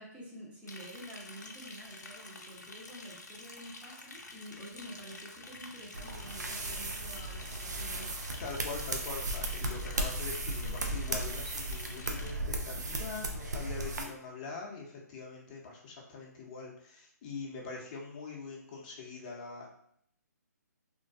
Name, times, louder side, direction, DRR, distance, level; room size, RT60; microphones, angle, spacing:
voice 1, 0.0-8.2, equal, 10° right, -5 dB, 0.7 m, -48 dB
Liquid, 0.7-12.3, left 3 dB, 80° left, 0.5 m, -49 dB
sound 1, 5.9-14.0, right 2 dB, 75° right, 0.5 m, -36 dB
voice 2, 8.4-19.7, left 4 dB, 30° left, -2 dB, 0.6 m, -43 dB
2.5 x 2.2 x 2.4 m, 0.68 s
figure-of-eight pair, 140°, 9 cm